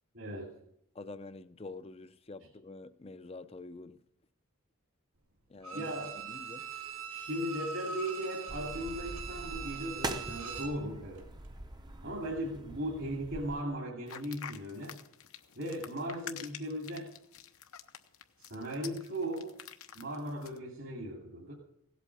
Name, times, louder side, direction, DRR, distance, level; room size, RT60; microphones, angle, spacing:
voice 1, 0.1-0.5 5.7-6.1 7.1-11.2 12.0-15.0 15.5-17.2 18.4-19.6 19.9-21.5, equal, 65° right, 2.6 m, -37 dB
voice 2, 0.9-4.0 5.5-5.9 6.2-6.7, left 3 dB, 25° left, 0.5 m, -47 dB
Bowed string instrument, 5.6-10.8 11.2-11.3, right 6 dB, 90° right, 2.2 m, -42 dB
sound 1, 8.5-13.6, right 2 dB, 20° right, 0.7 m, -43 dB
sound 2, 14.1-20.6, left 8 dB, 85° left, 1.0 m, -47 dB
17.0 x 8.3 x 7.1 m
head